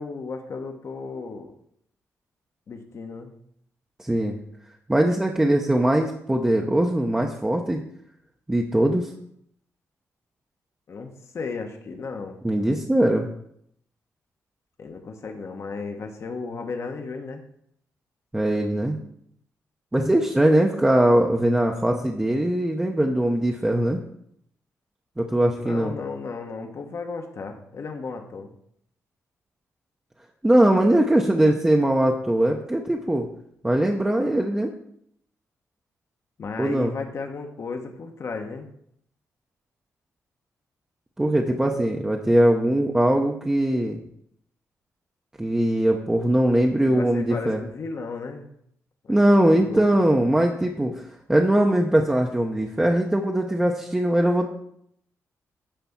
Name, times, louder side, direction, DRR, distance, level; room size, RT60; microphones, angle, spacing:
voice 1, 0.0-1.5 2.7-3.3 10.9-12.3 14.8-17.4 25.6-28.5 36.4-38.7 46.8-48.5 49.0-49.9, left 4 dB, 55° left, 4 dB, 1.1 m, -34 dB
voice 2, 4.0-4.3 4.9-7.8 8.5-9.1 12.4-13.3 18.3-19.0 19.9-24.0 25.2-25.9 30.4-33.3 33.6-34.7 36.6-36.9 41.2-44.0 45.4-47.6 49.1-54.5, right 1 dB, 10° right, 1 dB, 0.8 m, -21 dB
10.0 x 3.4 x 7.1 m, 0.70 s
cardioid pair, 105°, 6 cm